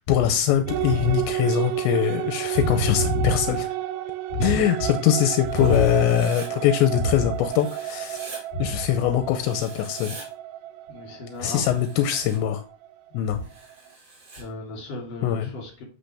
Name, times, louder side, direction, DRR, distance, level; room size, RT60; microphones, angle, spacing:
voice 1, 0.1-3.6 4.4-8.2 8.6-10.2 11.4-12.6 13.1-13.4 15.2-15.5, left 11 dB, 85° left, 2.8 m, -22 dB
voice 2, 0.6-1.3 2.5-3.5 4.3-6.0 6.9-7.4 8.5-9.0 10.9-11.6 13.2-13.5 14.4-15.8, equal, 40° left, 3.8 m, -30 dB
sound 1, 0.7-12.6, right 13 dB, 85° right, 2.8 m, -31 dB
Writing, 5.5-6.5 7.4-8.4 9.3-10.3 11.3-12.4 13.4-14.4, right 2 dB, 30° right, 1.9 m, -44 dB
7.6 x 6.2 x 3.3 m
omnidirectional pair, 5.2 m